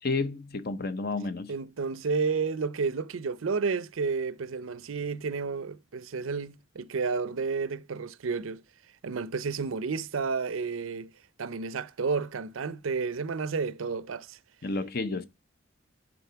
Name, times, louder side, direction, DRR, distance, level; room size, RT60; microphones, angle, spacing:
voice 1, 0.0-1.5 14.6-15.2, left 3 dB, 50° left, 0.8 m, -31 dB
voice 2, 1.5-8.6 9.0-11.1 11.4-14.4, right 4 dB, 90° right, 0.6 m, -31 dB
7.0 x 5.1 x 6.8 m
head